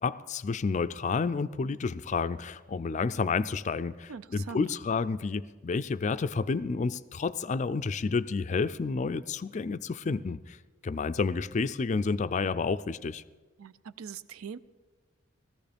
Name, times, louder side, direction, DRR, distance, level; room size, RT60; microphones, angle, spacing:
voice 1, 0.0-10.6 10.8-13.2, left 4 dB, 35° left, 14 dB, 0.3 m, -30 dB
voice 2, 4.1-4.6 13.6-14.6, right 6 dB, 85° right, 15 dB, 0.5 m, -42 dB
19.5 x 14.0 x 3.4 m, 1.3 s
head